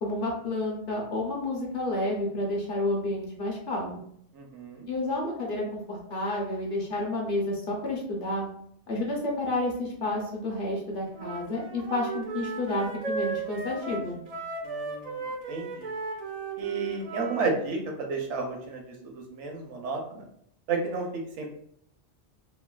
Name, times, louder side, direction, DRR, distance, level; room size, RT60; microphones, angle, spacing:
voice 1, 0.0-4.0 4.9-8.5 8.9-14.2, left 1 dB, 55° left, -2 dB, 0.9 m, -30 dB
voice 2, 4.3-4.9 14.6-15.2 15.5-15.9 16.6-20.2 20.7-21.5, right 4 dB, 85° right, 2 dB, 1.0 m, -32 dB
Wind instrument woodwind instrument, 11.1-17.5, right 4 dB, 70° right, 0.3 m, -35 dB
3.0 x 2.1 x 2.3 m, 0.69 s
omnidirectional pair, 1.2 m